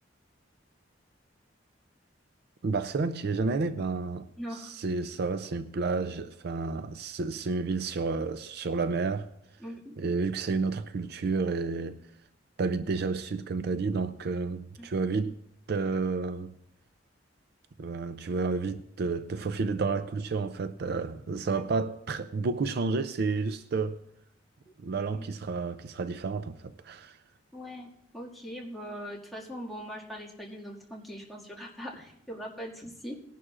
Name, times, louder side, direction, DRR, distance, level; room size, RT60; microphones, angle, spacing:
voice 1, 2.6-4.3 4.5-9.3 10.0-12.0 12.6-15.4 15.7-16.5 17.8-24.0 24.8-27.2, right 4 dB, 55° right, 0.4 m, -30 dB
voice 2, 4.4-4.7 9.6-10.0 14.8-14.9 24.7-24.8 25.1-25.3 27.5-33.2, equal, ahead, 2.0 m, -41 dB
19.5 x 11.0 x 2.5 m
head